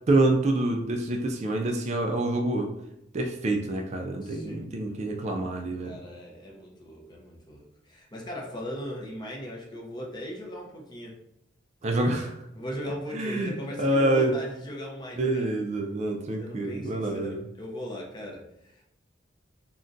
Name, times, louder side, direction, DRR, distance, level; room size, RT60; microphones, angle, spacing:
voice 1, 0.1-2.7 3.1-6.0 11.8-12.3 13.1-13.5 13.8-14.3 15.2-17.4, right 2 dB, 35° right, 3 dB, 0.3 m, -26 dB
voice 2, 4.2-4.9 5.8-11.2 12.5-15.5 16.4-18.8, equal, 20° left, -1 dB, 0.5 m, -38 dB
2.5 x 2.2 x 3.7 m, 0.83 s
head